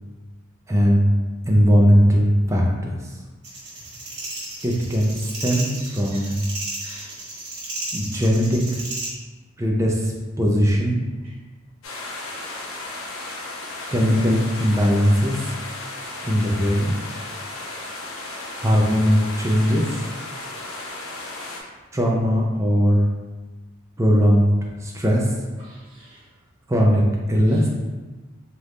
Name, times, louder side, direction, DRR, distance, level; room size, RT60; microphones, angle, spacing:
voice 1, 0.7-1.1 1.5-2.6 3.0-3.2 4.6-6.4 7.9-8.8 9.6-11.0 13.9-15.4 16.2-16.9 18.6-20.0 21.9-23.1 24.0-25.4 26.7-27.0 27.3-27.7, equal, 15° right, -2 dB, 0.5 m, -19 dB
sound 1, 3.4-9.1, right 2 dB, 50° right, 1.3 m, -33 dB
voice 2, 5.7-6.3 6.8-7.2 11.2-11.4 25.6-26.3 27.5-27.7, right 1 dB, 90° right, -6 dB, 1.0 m, -47 dB
sound 2, 11.8-21.6, left 2 dB, 85° left, 0.7 m, -34 dB
3.4 x 2.5 x 4.1 m, 1.3 s
head